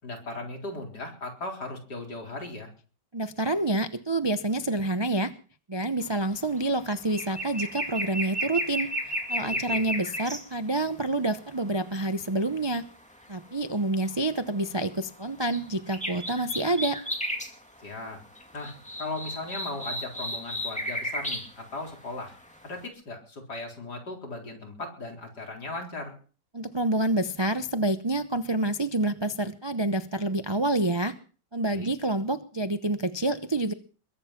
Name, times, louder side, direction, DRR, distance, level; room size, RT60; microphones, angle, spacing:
voice 1, 0.0-2.7 9.4-9.9 17.8-18.2 18.5-22.3 22.6-26.2 31.7-31.9, left 2 dB, 70° left, 2 dB, 4.6 m, -37 dB
voice 2, 3.1-5.3 5.7-12.8 13.3-17.0 26.5-31.2 31.5-33.7, right 2 dB, 40° right, 10 dB, 0.3 m, -28 dB
sound 1, 6.1-6.3 6.6-10.4 11.2-12.0 13.9-14.1 14.6-15.7 15.9-17.5 17.9-18.0 18.3-21.5 21.9-22.6 22.8-22.9, equal, 5° left, 2.3 m, -33 dB
22.0 x 9.4 x 5.9 m, 0.40 s
omnidirectional pair, 1.8 m